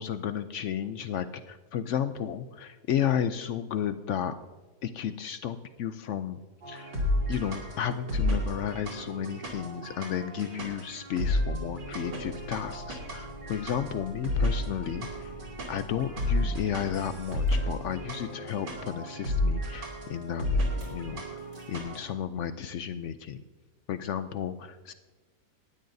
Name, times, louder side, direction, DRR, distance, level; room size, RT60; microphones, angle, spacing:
voice 1, 0.0-4.4 4.8-6.4 6.7-15.3 15.7-21.2 21.7-23.4 23.9-24.9, left 9 dB, 75° left, 11 dB, 0.7 m, -33 dB
sound 1, 6.6-22.0, left 1 dB, 90° right, 3.2 m, -32 dB
Motor vehicle (road), 11.9-18.3 20.6-21.0 21.4-21.7, left 2 dB, 50° right, 5.2 m, -46 dB
18.5 x 12.5 x 2.7 m, 1.3 s
omnidirectional pair, 1.8 m